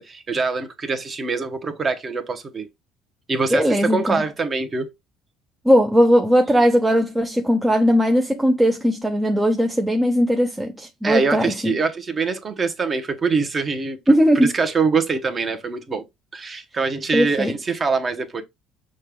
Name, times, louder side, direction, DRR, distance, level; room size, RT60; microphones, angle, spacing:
voice 1, 0.0-2.7 3.3-4.9 11.0-16.1 16.3-18.4, right 4 dB, 25° right, 0.8 m, -24 dB
voice 2, 3.5-4.2 5.6-11.7 14.1-14.5 17.1-17.5, equal, 5° right, 0.4 m, -18 dB
6.4 x 2.2 x 3.5 m
cardioid pair, 150°, 0 cm